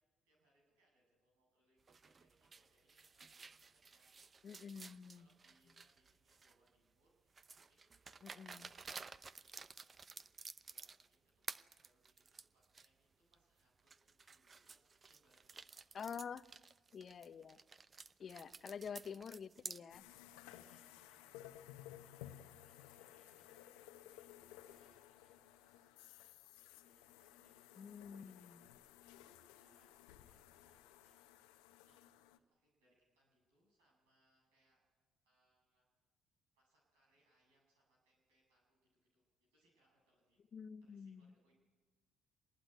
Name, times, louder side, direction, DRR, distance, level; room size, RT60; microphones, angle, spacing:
voice 1, 0.2-4.8 5.1-16.2 17.8-18.4 20.4-21.3 21.8-22.3 22.6-29.2 29.6-32.0 32.3-34.8 35.2-35.9 36.5-38.8 39.1-40.4 40.8-41.5, right 1 dB, 90° right, -1 dB, 7.7 m, -78 dB
sound 1, 1.9-6.7 7.4-11.1 11.4-12.9 13.3-13.4 13.9-19.8, right 4 dB, 35° right, 0.8 m, -53 dB
voice 2, 4.4-5.3 8.2-8.7 15.9-16.4 16.9-17.6 18.2-20.0 27.8-28.6 40.5-41.3, left 7 dB, 50° left, 14 dB, 0.8 m, -48 dB
sound 2, 19.9-32.4, left 12 dB, 85° left, 1.0 m, -58 dB
24.5 x 20.0 x 9.3 m, 1.3 s
hypercardioid pair, 60°, 0 cm